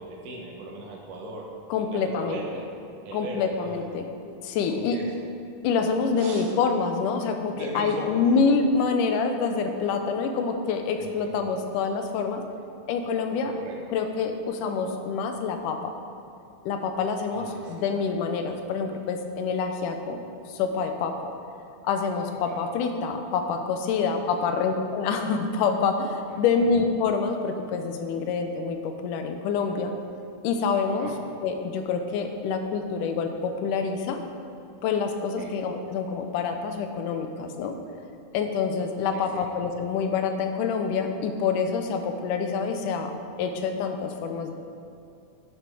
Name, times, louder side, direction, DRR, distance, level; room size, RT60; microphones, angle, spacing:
voice 1, 0.0-1.5 1.9-2.7 3.0-3.9 4.7-5.1 6.2-6.5 7.5-8.4 11.0-11.3 13.4-13.9 17.3-18.1 22.4-22.7 24.5-24.6 26.3-26.7 30.9-31.2 35.4-35.5 39.1-39.5, right 2 dB, 75° right, -1 dB, 2.7 m, -39 dB
voice 2, 1.7-2.4 3.1-4.1 4.4-5.0 5.6-12.4 12.9-13.5 13.9-15.9 16.6-20.2 20.5-21.2 21.8-29.9 30.4-31.1 31.4-34.2 34.8-37.8 38.3-43.1 43.4-44.5, left 5 dB, 80° left, 6 dB, 2.2 m, -26 dB
10.5 x 6.6 x 4.8 m, 2.6 s
omnidirectional pair, 3.8 m